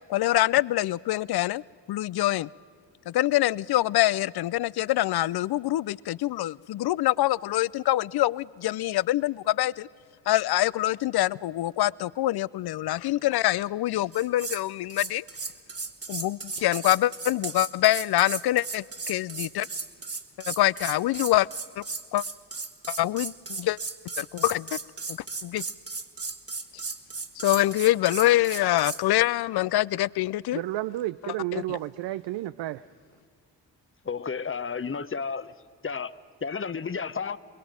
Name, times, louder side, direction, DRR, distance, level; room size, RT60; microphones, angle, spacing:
voice 1, 0.1-1.6 1.9-2.5 3.1-9.9 10.3-15.2 16.1-19.7 20.5-21.5 21.8-21.9 22.1-22.2 22.9-23.8 24.2-24.8 25.1-25.6 26.7-26.8 27.4-30.6 31.2-31.8, left 15 dB, 60° left, 22 dB, 0.5 m, -25 dB
sound 1, 14.1-14.6 14.9-29.0, right 4 dB, 35° right, 1.7 m, -35 dB
voice 2, 30.5-32.8, right 15 dB, 70° right, 15 dB, 0.5 m, -31 dB
voice 3, 34.0-35.5 35.8-36.1 36.4-37.4, left 5 dB, 30° left, 14 dB, 0.9 m, -31 dB
24.0 x 21.5 x 5.1 m, 2.2 s
supercardioid pair, 45°, 43 cm